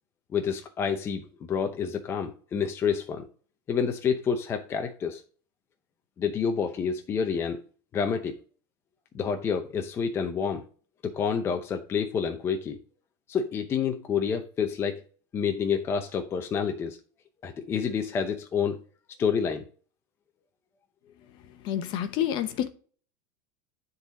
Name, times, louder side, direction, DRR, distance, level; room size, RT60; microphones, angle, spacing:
voice 1, 0.3-3.3 3.7-5.2 6.2-7.6 7.9-8.4 9.1-10.6 11.0-12.8 13.3-15.0 15.3-17.0 17.4-18.8 19.2-19.7, left 6 dB, 20° left, 0.7 m, -28 dB
voice 2, 21.4-22.7, left 10 dB, 40° left, 1.0 m, -29 dB
10.0 x 4.0 x 4.0 m
supercardioid pair, 165°, 12 cm